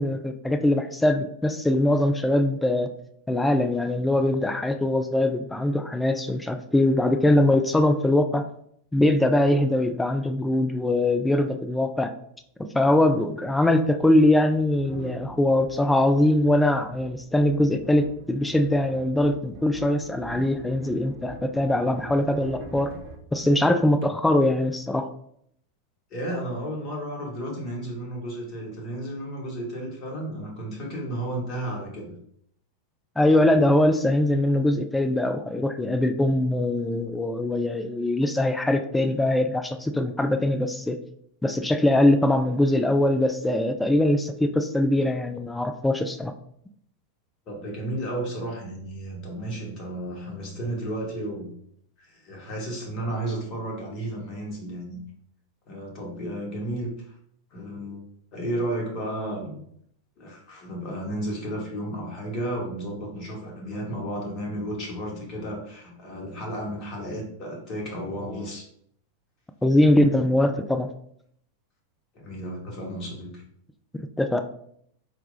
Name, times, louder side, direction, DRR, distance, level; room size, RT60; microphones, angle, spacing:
voice 1, 0.0-2.9 3.3-8.5 8.9-12.1 12.7-22.9 23.3-25.1 33.2-41.0 41.4-46.3 69.6-70.9 73.9-74.4, left 1 dB, 5° left, 7 dB, 0.3 m, -22 dB
sound 1, 12.4-12.5 13.4-24.1, right 2 dB, 50° right, 0.8 m, -44 dB
voice 2, 26.1-32.1 47.5-51.5 52.0-55.0 55.7-56.9 57.5-58.0 58.3-59.6 60.2-68.6 72.1-73.4, right 1 dB, 35° left, -2 dB, 1.5 m, -33 dB
4.4 x 3.3 x 2.6 m, 0.67 s
figure-of-eight pair, 90°, 0 cm